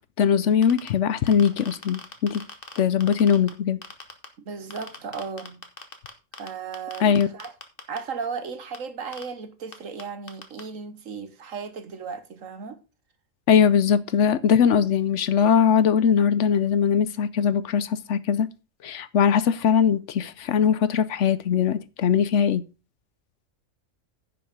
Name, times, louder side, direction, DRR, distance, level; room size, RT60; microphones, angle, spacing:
voice 1, 0.2-2.4 2.8-3.8 7.0-7.3 13.5-18.5 18.8-22.6, left 7 dB, 70° left, 1.0 m, -21 dB
sound 1, 0.5-0.9 1.3-3.5 3.8-4.3 4.7-6.5 6.7-8.0 8.7-8.8 9.1-9.2 9.7-9.8 10.0-10.1 10.3-10.6, left 4 dB, 45° left, 1.7 m, -39 dB
voice 2, 4.4-5.6 6.4-7.5 7.9-12.8, right 5 dB, 80° right, 1.6 m, -35 dB
10.5 x 6.3 x 5.1 m
omnidirectional pair, 1.4 m